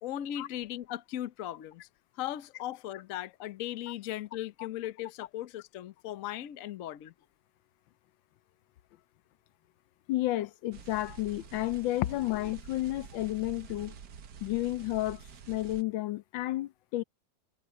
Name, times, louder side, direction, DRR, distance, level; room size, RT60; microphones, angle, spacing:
voice 1, 0.0-1.8 2.2-7.1, left 12 dB, 60° left, 0.9 m, -38 dB
voice 2, 10.1-13.9 14.4-15.2 15.5-17.0, left 16 dB, 85° left, 1.4 m, -31 dB
sound 1, 10.7-15.8, right 7 dB, 60° right, 1.6 m, -48 dB
omnidirectional pair, 2.0 m